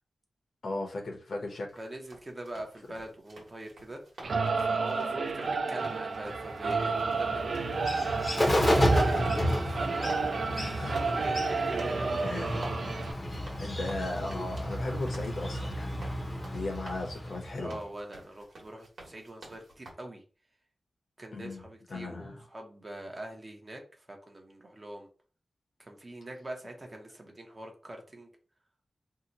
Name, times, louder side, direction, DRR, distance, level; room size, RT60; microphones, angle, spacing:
voice 1, 0.6-1.7 10.7-11.0 12.2-12.7 13.6-16.1 16.5-17.8 21.3-21.6 21.9-22.3, left 2 dB, 65° left, 1 dB, 0.8 m, -36 dB
sound 1, 1.7-19.9, right 2 dB, 80° right, 1.1 m, -51 dB
voice 2, 1.8-4.0 4.6-7.8 8.3-12.1 17.6-20.2 21.2-25.1 25.8-28.3, right 1 dB, 25° right, 2 dB, 0.7 m, -43 dB
Singing / Musical instrument, 4.2-13.1, right 4 dB, 60° right, 0.4 m, -31 dB
Bird, 6.3-17.8, equal, 25° left, 0.6 m, -31 dB
2.7 x 2.1 x 3.9 m, 0.38 s
wide cardioid pair, 160°, 0 cm